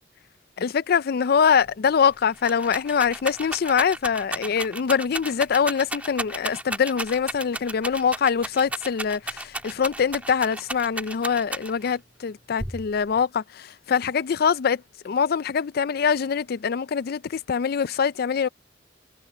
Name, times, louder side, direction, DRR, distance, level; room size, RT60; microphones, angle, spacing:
voice 1, 0.6-18.5, left 6 dB, 60° left, 0.4 m, -24 dB
Rattle, 1.7-1.8 2.0-12.0 12.6-13.2, right 1 dB, 10° right, 1.8 m, -33 dB
head